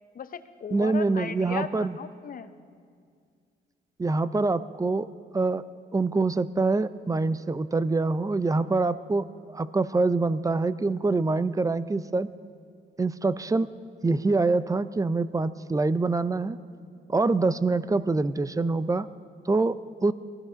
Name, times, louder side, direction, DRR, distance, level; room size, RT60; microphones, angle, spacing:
voice 1, 0.1-2.5, left 7 dB, 45° left, 11 dB, 0.8 m, -37 dB
voice 2, 0.7-1.9 4.0-5.1 5.3-5.6 5.9-9.3 9.5-12.3 13.0-13.7 14.0-16.6 17.1-19.1 19.5-20.1, right 3 dB, 15° right, 15 dB, 0.5 m, -25 dB
19.0 x 14.5 x 5.2 m, 2.2 s
cardioid pair, 90°, 20 cm